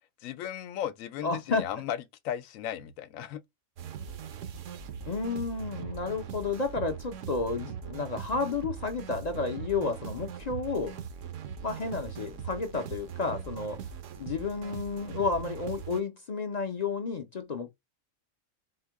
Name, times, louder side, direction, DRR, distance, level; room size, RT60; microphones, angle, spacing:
voice 1, 0.2-2.0 2.2-3.4, left 10 dB, 85° left, 1.0 m, -35 dB
voice 2, 1.2-1.6 5.1-11.0 11.6-13.8 14.2-17.7, left 4 dB, 50° left, 0.5 m, -31 dB
sound 1, 3.8-16.0, right 8 dB, 70° right, 1.0 m, -40 dB
4.3 x 2.1 x 4.5 m
omnidirectional pair, 1.4 m